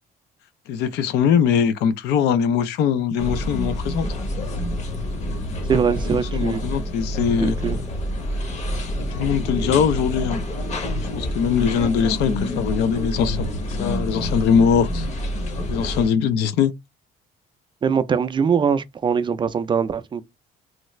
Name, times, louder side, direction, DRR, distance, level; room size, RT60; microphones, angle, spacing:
voice 1, 0.7-4.1 6.1-7.6 9.0-10.4 11.1-13.5 13.8-15.1 15.7-16.7, left 7 dB, 80° left, 0.5 m, -21 dB
sound 1, 3.2-16.1, left 1 dB, 40° left, 0.8 m, -27 dB
voice 2, 5.7-6.6 7.4-7.8 17.8-20.2, right 6 dB, 30° right, 0.3 m, -22 dB
3.2 x 2.3 x 3.1 m
cardioid pair, 110°, 17 cm